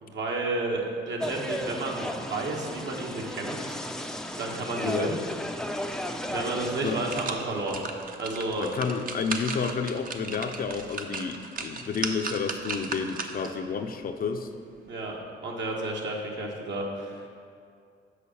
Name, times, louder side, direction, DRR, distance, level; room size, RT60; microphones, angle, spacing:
voice 1, 0.0-3.8 4.4-5.2 6.3-7.8 8.2-8.7 14.8-17.3, right 2 dB, 65° right, -1 dB, 1.4 m, -31 dB
sound 1, 1.2-7.3, equal, 5° left, 0.5 m, -35 dB
voice 2, 4.8-5.1 6.8-7.0 8.6-14.5, left 5 dB, 45° left, 6 dB, 0.6 m, -30 dB
sound 2, 6.2-6.3 6.7-13.6 14.0-14.1, right 4 dB, 45° right, 0.7 m, -36 dB
6.6 x 5.0 x 6.9 m, 2.3 s
cardioid pair, 90°, 20 cm